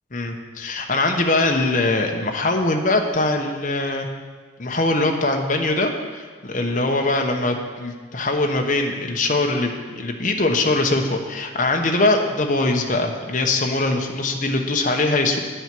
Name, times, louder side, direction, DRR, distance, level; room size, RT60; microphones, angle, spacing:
voice 1, 0.1-4.1 4.6-15.4, left 2 dB, 45° left, 2 dB, 1.0 m, -22 dB
9.6 x 7.8 x 6.1 m, 1.5 s
head